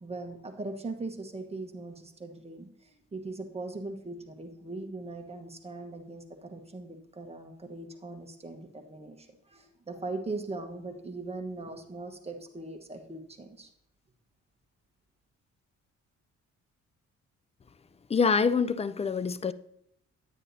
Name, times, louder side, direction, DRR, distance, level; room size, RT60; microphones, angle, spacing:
voice 1, 0.0-13.7, right 2 dB, 20° right, 1.2 m, -40 dB
voice 2, 18.1-19.5, left 5 dB, 20° left, 0.4 m, -25 dB
9.7 x 9.3 x 2.8 m
cardioid pair, 90°, 30 cm